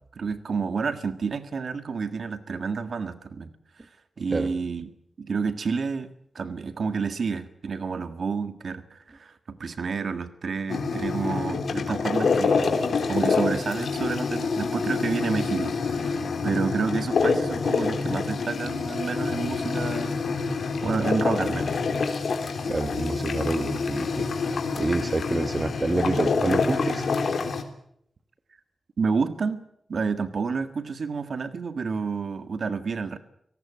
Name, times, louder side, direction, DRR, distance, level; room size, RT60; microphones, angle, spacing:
voice 1, 0.1-3.5 3.8-3.9 4.2-21.7 29.0-29.6 29.9-33.2, right 5 dB, 60° right, 10 dB, 1.6 m, -30 dB
sound 1, 10.7-27.6, left 4 dB, 75° left, 3.3 m, -26 dB
voice 2, 22.7-27.1, right 2 dB, 30° right, 9 dB, 1.3 m, -28 dB
26.0 x 18.5 x 8.5 m, 0.74 s
wide cardioid pair, 175°, 0 cm